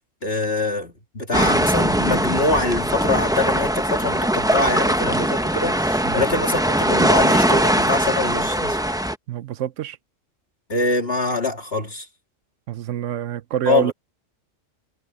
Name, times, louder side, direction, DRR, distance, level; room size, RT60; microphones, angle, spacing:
voice 1, 0.2-8.8 10.7-12.1 13.6-13.9, left 2 dB, 50° left, 3.3 m, -24 dB
sound 1, 1.3-9.1, equal, 5° right, 0.7 m, -20 dB
voice 2, 9.3-10.0 12.7-13.9, right 10 dB, 75° right, 1.1 m, -26 dB
omnidirectional pair, 1.3 m